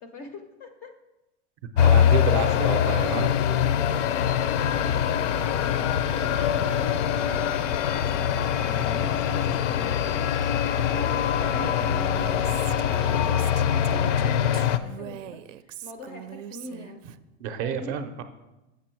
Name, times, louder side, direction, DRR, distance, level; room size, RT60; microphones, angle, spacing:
voice 1, 0.0-0.9 4.7-17.0 17.5-18.0, left 1 dB, 25° left, 6 dB, 0.4 m, -42 dB
industrial noise background atmosphere, 1.8-14.8, left 9 dB, 75° left, 0.6 m, -23 dB
voice 2, 1.8-3.4 9.5-9.6 17.4-18.2, right 7 dB, 35° right, 8 dB, 0.5 m, -30 dB
Female speech woman speaking, 11.8-17.2, right 11 dB, 85° right, 0.5 m, -41 dB
6.9 x 6.0 x 4.4 m, 1.0 s
supercardioid pair, 145°, 37 cm